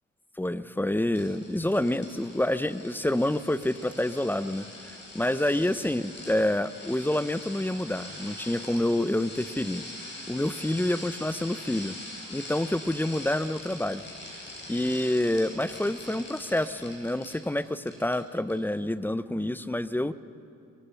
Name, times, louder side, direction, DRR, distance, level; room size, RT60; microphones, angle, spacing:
voice 1, 0.4-9.8 10.3-12.0 12.3-14.0 14.7-20.1, left 1 dB, 5° left, 14 dB, 0.6 m, -28 dB
sound 1, 1.1-17.6 17.9-18.2 18.5-18.6, left 1 dB, 35° left, 7.4 m, -43 dB
23.5 x 23.5 x 5.7 m, 2.4 s
cardioid pair, 90°, 30 cm